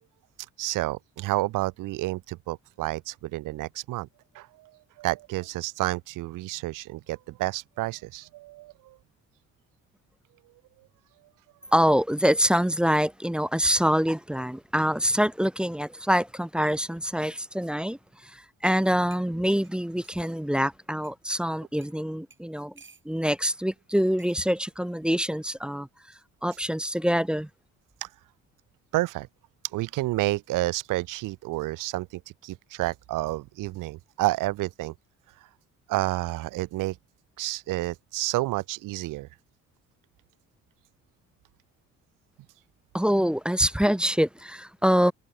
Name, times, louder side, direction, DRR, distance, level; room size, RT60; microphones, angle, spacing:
voice 1, 0.6-4.1 4.3-4.7 5.0-9.0 28.0-28.1 28.9-29.3 29.7-34.9 35.9-37.0 37.4-39.3, right 18 dB, 65° right, 0.5 m, -30 dB
voice 2, 11.7-22.7 23.0-25.9 26.4-27.5 42.9-45.1, equal, 5° right, 0.6 m, -25 dB
sound 1, 19.1-20.3 21.0-21.2 21.8-22.0 22.3-23.4 24.2-24.4 25.5-25.8, right 4 dB, 35° right, 3.9 m, -56 dB
hypercardioid pair, 55°, 35 cm